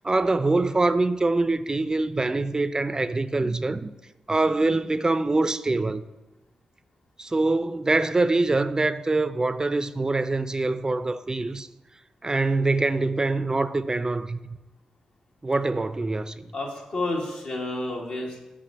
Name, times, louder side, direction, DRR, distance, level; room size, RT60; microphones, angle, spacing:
voice 1, 0.0-3.9 4.3-6.0 7.2-11.7 12.2-14.6 15.4-16.5, right 2 dB, 30° right, 0.4 m, -24 dB
voice 2, 16.5-18.4, left 2 dB, 70° left, 1.6 m, -30 dB
5.0 x 5.0 x 5.8 m
supercardioid pair, 45°, 2 cm